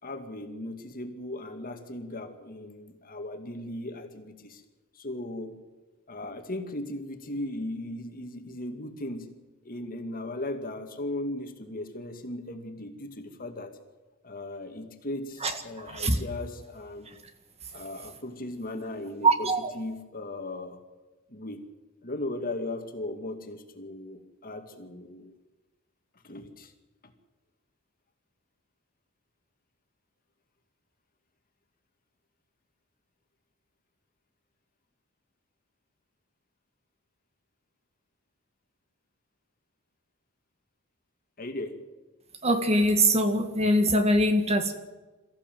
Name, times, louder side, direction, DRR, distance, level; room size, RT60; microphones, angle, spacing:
voice 1, 0.0-4.6 4.9-5.6 6.1-9.3 9.6-13.7 14.2-17.1 17.7-19.5 19.7-20.8 21.3-21.6 22.0-25.3 26.2-26.7 27.0-27.1 41.4-41.8, left 1 dB, 40° left, 6 dB, 2.1 m, -37 dB
voice 2, 15.4-16.2 17.1-17.2 19.2-19.7 42.4-44.7, right 1 dB, 30° right, 7 dB, 1.6 m, -23 dB
23.5 x 14.5 x 7.7 m, 1.2 s
head